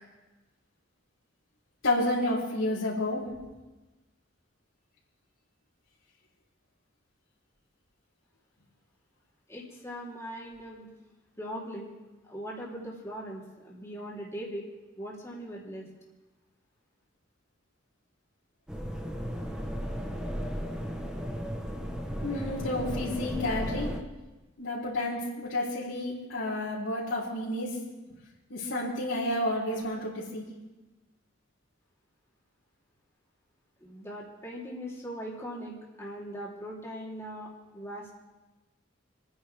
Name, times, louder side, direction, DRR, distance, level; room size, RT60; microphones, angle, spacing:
voice 1, 1.8-3.2 22.2-23.9 24.6-27.8 28.5-30.5, left 1 dB, 75° left, -10 dB, 3.9 m, -30 dB
voice 2, 9.5-10.9 11.4-11.9 12.2-14.6 15.0-15.9 33.8-35.7 36.0-38.1, equal, 15° left, -5 dB, 3.3 m, -40 dB
sound 1, 18.7-24.0, equal, 5° right, 1.1 m, -35 dB
30.0 x 10.0 x 3.5 m, 1.1 s
head